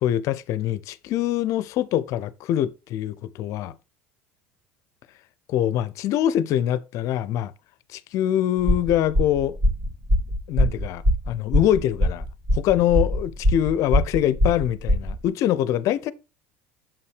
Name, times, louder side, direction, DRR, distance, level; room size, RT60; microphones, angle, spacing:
voice 1, 0.0-3.7 5.5-7.5 7.9-9.6 10.5-12.3 12.5-16.1, left 11 dB, 55° left, 0.5 m, -24 dB
sound 1, 8.6-15.3, equal, 45° right, 2.7 m, -22 dB
7.1 x 5.5 x 3.3 m
hypercardioid pair, 80°, 6 cm